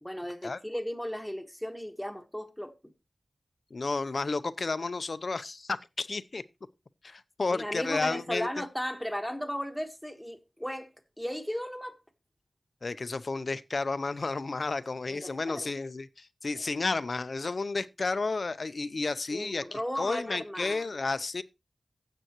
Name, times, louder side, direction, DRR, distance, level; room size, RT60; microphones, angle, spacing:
voice 1, 0.0-2.9 7.5-10.9 11.2-12.0 15.1-15.7 16.6-16.7 19.3-20.8, equal, ahead, 1.5 m, -36 dB
voice 2, 3.7-6.4 7.0-8.5 12.8-21.4, left 3 dB, 55° left, 0.6 m, -32 dB
16.0 x 7.6 x 3.0 m
wide cardioid pair, 90°, 0 cm